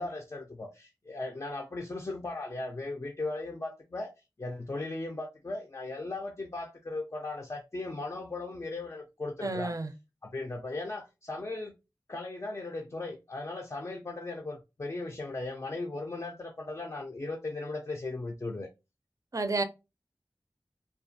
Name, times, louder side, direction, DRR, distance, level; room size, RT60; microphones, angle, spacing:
voice 1, 0.0-4.1 4.4-9.8 10.2-11.7 12.1-18.7, left 2 dB, 35° left, 0.4 m, -37 dB
voice 2, 9.4-9.9 19.3-19.6, right 3 dB, 45° right, 0.4 m, -30 dB
2.3 x 2.2 x 2.6 m
wide cardioid pair, 40°, 8 cm